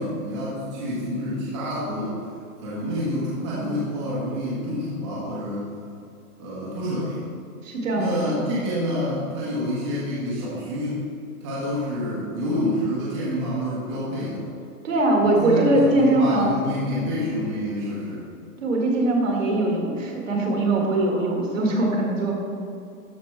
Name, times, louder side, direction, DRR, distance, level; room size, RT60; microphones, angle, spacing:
voice 1, 0.0-2.2 2.6-5.7 6.4-7.3 7.9-11.0 11.4-14.5 15.2-18.3, equal, 20° right, -8 dB, 1.2 m, -28 dB
voice 2, 7.6-8.6 14.8-16.6 18.6-22.3, right 2 dB, 55° right, 0 dB, 1.9 m, -21 dB
13.0 x 4.6 x 4.6 m, 2.5 s
hypercardioid pair, 180°, 46 cm